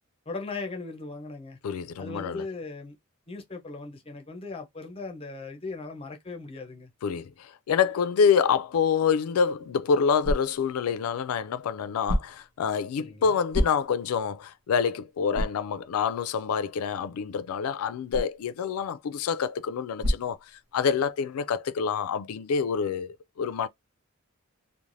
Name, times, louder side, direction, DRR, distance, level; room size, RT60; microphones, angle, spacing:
voice 1, 0.3-1.6 2.0-3.0 3.3-6.9 13.0-13.3, left 3 dB, 25° left, 0.5 m, -38 dB
voice 2, 1.6-2.5 7.0-23.7, left 6 dB, 90° left, 0.3 m, -27 dB
sound 1, 9.4-21.1, equal, 80° right, 0.8 m, -35 dB
3.1 x 2.1 x 2.5 m
head